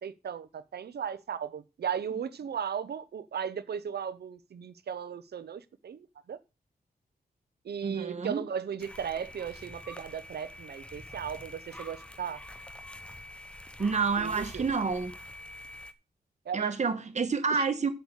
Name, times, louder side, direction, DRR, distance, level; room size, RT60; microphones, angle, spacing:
voice 1, 0.0-6.4 7.6-12.4 14.2-14.7 16.4-16.7, right 8 dB, 85° right, 0.8 m, -36 dB
voice 2, 7.8-8.4 13.8-15.1 16.5-17.9, right 5 dB, 45° right, 1.6 m, -29 dB
sound 1, 8.8-15.9, left 1 dB, 5° left, 0.8 m, -46 dB
8.2 x 6.8 x 6.4 m
wide cardioid pair, 130°, 16 cm